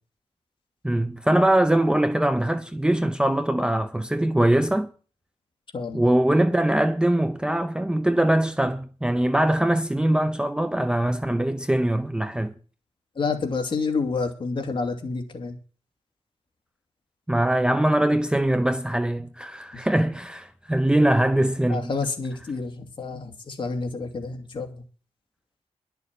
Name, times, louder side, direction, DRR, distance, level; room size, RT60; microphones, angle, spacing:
voice 1, 0.8-4.9 5.9-12.5 17.3-21.9, right 1 dB, 5° right, 0.6 m, -22 dB
voice 2, 5.7-6.1 13.2-15.6 21.7-24.8, left 4 dB, 45° left, 2.5 m, -29 dB
11.0 x 7.0 x 8.4 m
wide cardioid pair, 150°, 12 cm